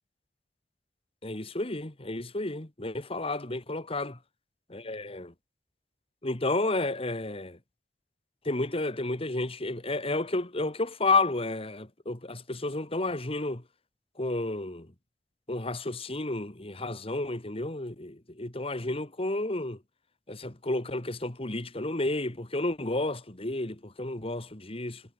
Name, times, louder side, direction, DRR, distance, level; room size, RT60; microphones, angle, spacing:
voice 1, 1.2-4.2 4.7-5.3 6.2-7.6 8.5-13.6 14.2-14.9 15.5-19.8 20.3-25.0, left 2 dB, 35° left, 2.0 m, -31 dB
head